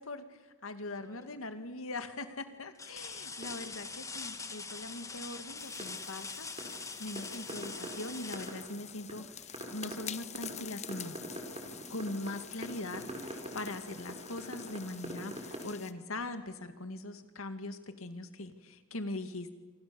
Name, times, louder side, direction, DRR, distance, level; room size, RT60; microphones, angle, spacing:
voice 1, 0.0-6.5 7.0-11.2 11.9-19.5, left 2 dB, 75° left, 9 dB, 2.3 m, -41 dB
sound 1, 1.0-1.5 2.0-2.1 2.7-9.4 11.2-11.3 11.8-12.8 14.2-14.3, left 4 dB, 15° left, 1.4 m, -44 dB
sound 2, 3.0-4.6 5.6-15.6, right 1 dB, 30° right, 4.6 m, -45 dB
sound 3, 5.6-15.9, left 9 dB, 35° left, 1.0 m, -48 dB
29.0 x 26.0 x 7.1 m, 1.3 s
head